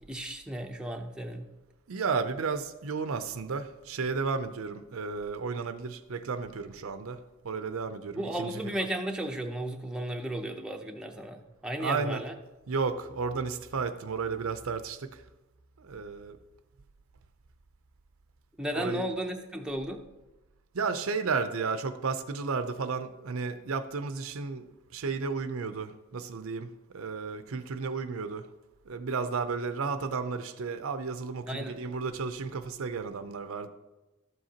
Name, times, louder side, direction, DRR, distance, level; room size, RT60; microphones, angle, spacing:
voice 1, 0.1-1.5 8.2-12.3 18.6-20.0 31.5-31.8, right 1 dB, 5° right, 2 dB, 0.6 m, -34 dB
voice 2, 1.9-7.2 7.4-8.9 11.8-12.2 12.7-15.2 15.8-16.4 18.7-19.0 20.7-24.6 24.9-28.5 28.9-33.7, right 4 dB, 70° right, 10 dB, 0.6 m, -33 dB
12.5 x 7.7 x 2.9 m, 1.1 s
head